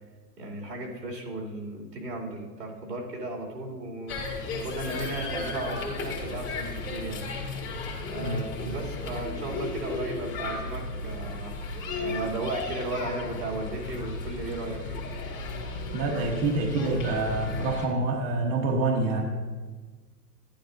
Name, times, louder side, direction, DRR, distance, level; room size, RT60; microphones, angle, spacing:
voice 1, 0.4-7.2 8.1-11.5 12.0-15.0, right 2 dB, 90° right, -1 dB, 2.9 m, -35 dB
sound 1, 4.1-17.9, left 3 dB, 25° left, 1.9 m, -35 dB
voice 2, 15.9-19.2, right 2 dB, 35° right, 0 dB, 1.3 m, -26 dB
11.5 x 10.5 x 2.6 m, 1.4 s
hypercardioid pair, 130°, 49 cm